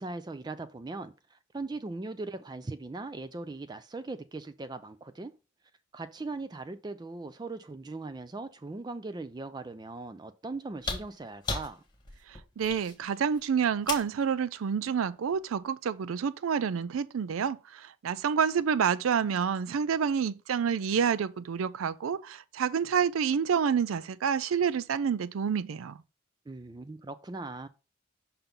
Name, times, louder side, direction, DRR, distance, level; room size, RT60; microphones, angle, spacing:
voice 1, 0.0-5.3 5.9-11.8 26.5-27.7, right 3 dB, 20° right, 0.3 m, -39 dB
sound 1, 10.7-14.2 15.6-15.7, left 3 dB, 20° left, 1.4 m, -37 dB
voice 2, 12.3-26.0, right 7 dB, 85° right, 0.4 m, -28 dB
5.8 x 3.8 x 5.2 m
head